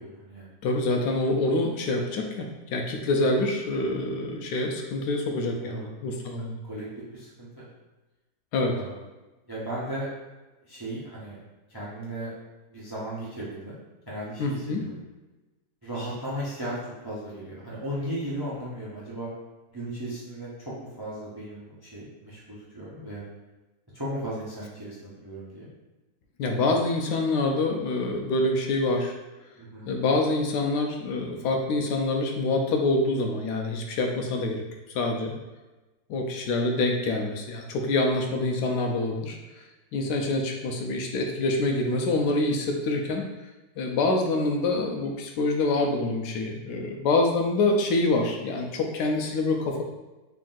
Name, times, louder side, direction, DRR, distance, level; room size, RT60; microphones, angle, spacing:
voice 1, 0.0-0.5 3.1-3.2 5.6-5.9 6.7-6.9 7.1-7.7 8.7-9.0 9.5-10.1 10.6-11.4 11.7-12.3 12.7-13.7 14.1-14.9 15.8-19.3 19.7-23.2 23.9-25.7 29.6-29.9 41.9-42.1, right 1 dB, 35° right, -7 dB, 0.4 m, -36 dB
voice 2, 0.6-6.6 8.5-8.7 14.4-14.8 26.4-29.1 29.9-34.6 34.9-35.3 36.1-39.4 39.9-43.3 43.8-49.8, left 2 dB, 90° left, 2 dB, 1.2 m, -26 dB
3.5 x 2.5 x 3.8 m, 1.1 s
omnidirectional pair, 1.7 m